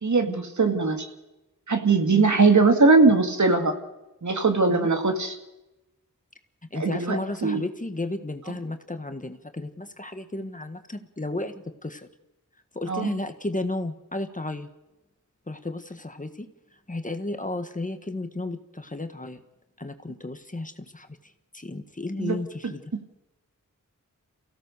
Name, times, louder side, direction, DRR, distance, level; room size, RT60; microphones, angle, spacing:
voice 1, 0.0-1.1 1.7-3.7 4.2-5.4 6.8-7.7 12.9-13.1 22.2-22.4 22.6-23.0, right 4 dB, 60° right, 5 dB, 2.3 m, -21 dB
voice 2, 6.7-11.5 11.8-12.1 12.7-14.7 15.5-16.5 16.9-19.4 19.8-21.1 21.5-22.9, left 2 dB, 25° left, 7 dB, 1.6 m, -33 dB
29.0 x 16.5 x 6.7 m, 0.99 s
wide cardioid pair, 85°, 32 cm